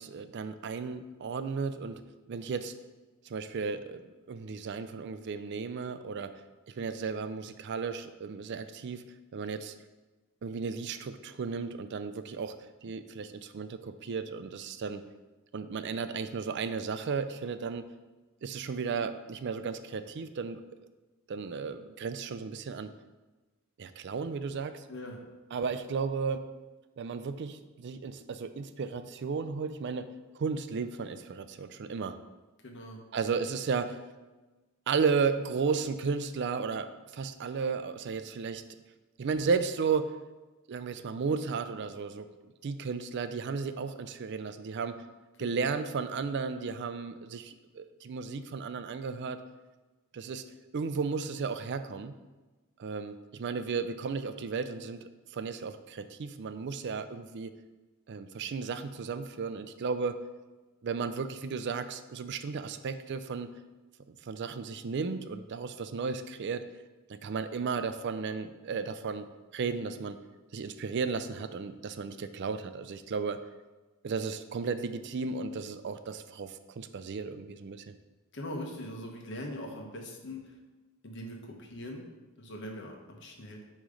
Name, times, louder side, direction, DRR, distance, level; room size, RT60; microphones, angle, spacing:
voice 1, 0.0-2.0 2.3-2.7 3.3-4.0 4.3-6.3 6.8-9.0 9.3-9.7 10.4-12.6 12.8-15.0 15.5-17.9 18.4-20.6 21.3-22.9 23.8-24.8 25.5-26.4 27.0-32.2 33.1-34.0 34.9-38.6 39.2-40.1 40.7-42.3 42.6-45.0 45.4-49.4 50.1-50.4 50.7-52.1 52.8-55.0 55.3-57.5 58.1-60.2 60.8-63.5 64.2-66.6 67.1-69.3 69.5-70.2 70.5-73.4 74.0-77.9, right 5 dB, 55° right, 11 dB, 0.4 m, -34 dB
voice 2, 32.6-33.0 45.4-45.7 78.3-80.5 81.0-82.1 82.4-83.6, left 1 dB, 55° left, 2 dB, 1.1 m, -41 dB
8.4 x 3.1 x 5.1 m, 1.2 s
head